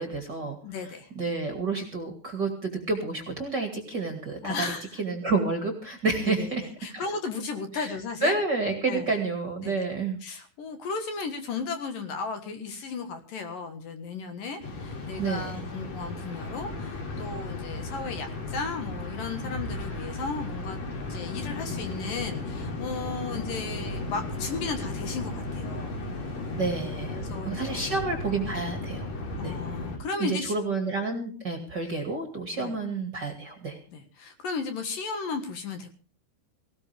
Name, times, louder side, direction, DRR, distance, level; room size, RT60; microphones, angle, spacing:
voice 1, 0.0-0.6 1.2-4.7 5.0-7.0 7.7-7.9 8.2-10.2 15.2-15.5 26.6-29.1 29.4-29.6 30.2-33.8, right 3 dB, 35° right, 4 dB, 2.0 m, -29 dB
voice 2, 0.6-1.1 4.4-5.0 6.3-6.5 6.8-8.3 8.9-9.2 9.6-9.8 10.2-20.8 21.1-26.0 27.1-27.8 29.4-30.5 32.5-32.8 33.9-35.9, left 4 dB, 60° left, 7 dB, 2.9 m, -35 dB
sound 1, 14.6-30.0, left 2 dB, 45° left, 3.5 m, -35 dB
18.5 x 17.5 x 3.5 m, 0.37 s
omnidirectional pair, 4.8 m